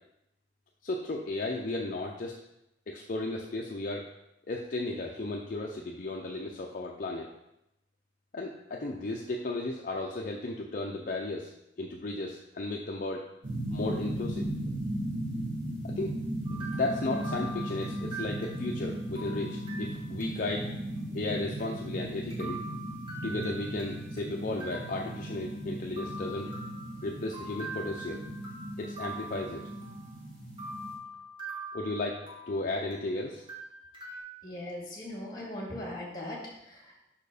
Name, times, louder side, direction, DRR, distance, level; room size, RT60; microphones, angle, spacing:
voice 1, 0.8-2.4 2.9-4.1 4.5-7.3 8.3-11.5 11.8-13.3 13.7-14.4 15.8-16.2 16.5-20.7 21.1-22.6 23.2-26.5 27.0-28.2 28.8-29.6 31.7-33.4, left 2 dB, 45° left, 0 dB, 0.5 m, -34 dB
sound 1, 13.4-30.9, right 1 dB, 80° right, 2.5 m, -37 dB
sound 2, 16.5-20.7 21.0-21.1 21.6-21.7 22.3-24.3 24.6-25.6 26.0-30.2 30.6-33.1 33.5-34.2, right 2 dB, 25° right, 1.6 m, -44 dB
voice 2, 34.4-36.4 36.7-36.9, left 1 dB, 25° left, -2 dB, 2.0 m, -39 dB
5.8 x 4.5 x 4.9 m, 0.85 s
head